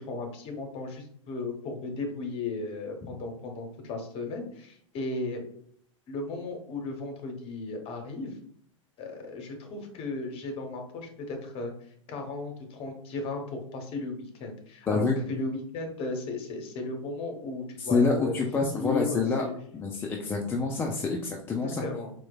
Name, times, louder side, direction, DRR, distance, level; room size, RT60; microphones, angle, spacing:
voice 1, 0.0-5.4 6.1-8.4 9.0-11.7 12.1-18.4 18.7-19.5 21.6-22.1, left 3 dB, 35° left, 4 dB, 0.9 m, -35 dB
voice 2, 14.9-15.2 17.8-19.4 19.7-21.8, left 4 dB, 15° left, 1 dB, 0.3 m, -27 dB
4.3 x 2.2 x 2.3 m, 0.64 s
figure-of-eight pair, 95°, 17 cm